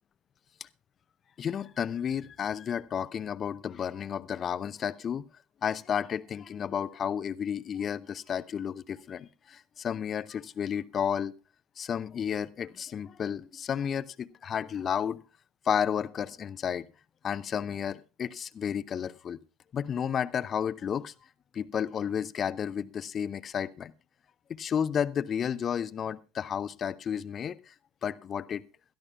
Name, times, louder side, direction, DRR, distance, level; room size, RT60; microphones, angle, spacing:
voice 1, 1.4-5.2 5.6-11.3 11.8-15.2 15.7-16.9 17.2-19.4 19.7-21.1 21.5-23.9 24.5-27.7 28.0-28.6, left 8 dB, 35° left, 0.6 m, -32 dB
21.5 x 13.0 x 2.3 m
figure-of-eight pair, 70°, 0 cm